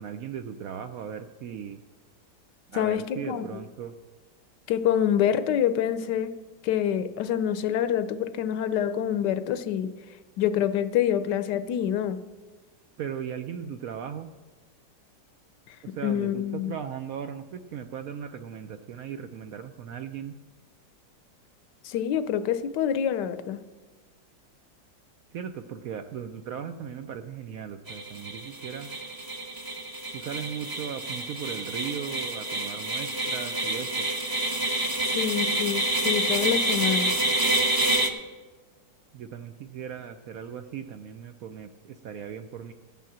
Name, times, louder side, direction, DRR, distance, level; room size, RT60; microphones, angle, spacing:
voice 1, 0.0-1.8 2.7-3.9 13.0-14.3 15.9-20.3 25.3-28.9 30.1-34.1 39.1-42.7, right 8 dB, 70° right, 8 dB, 0.8 m, -37 dB
voice 2, 2.7-3.6 4.7-6.4 6.6-9.9 10.4-12.2 15.7-15.8 16.0-16.7 21.8-23.6 35.0-37.1, left 9 dB, 75° left, 12 dB, 1.2 m, -26 dB
sound 1, 27.9-38.1, right 1 dB, 20° right, 0.6 m, -28 dB
16.5 x 5.6 x 7.4 m, 1.3 s
omnidirectional pair, 1.9 m